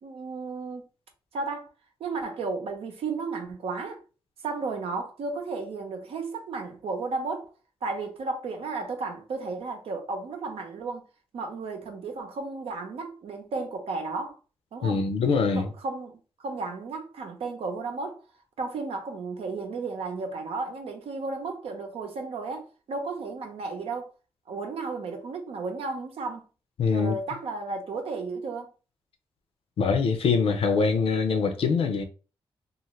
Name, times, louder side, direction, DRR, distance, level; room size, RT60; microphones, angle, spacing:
voice 1, 0.0-0.8 1.3-1.7 2.0-4.0 4.4-7.5 7.8-11.0 11.3-14.4 14.7-15.0 15.5-18.2 18.6-24.1 24.5-26.4 26.9-28.7, right 3 dB, 80° right, 0.7 m, -33 dB
voice 2, 14.8-15.7 26.8-27.2 29.8-32.0, left 5 dB, 75° left, 0.6 m, -23 dB
2.5 x 2.5 x 3.1 m
cardioid pair, 65°, 10 cm